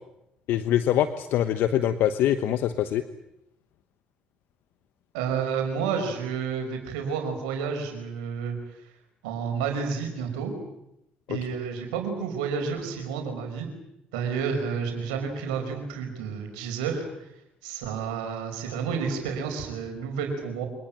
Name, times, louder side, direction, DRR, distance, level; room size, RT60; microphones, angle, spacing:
voice 1, 0.5-3.0 11.3-11.4, left 11 dB, 70° left, 11 dB, 1.1 m, -24 dB
voice 2, 5.1-8.6 9.2-10.5 11.3-13.7 14.1-17.1 17.6-20.7, right 6 dB, 85° right, 4 dB, 5.3 m, -30 dB
26.5 x 19.0 x 9.0 m, 0.84 s
hypercardioid pair, 55°, 4 cm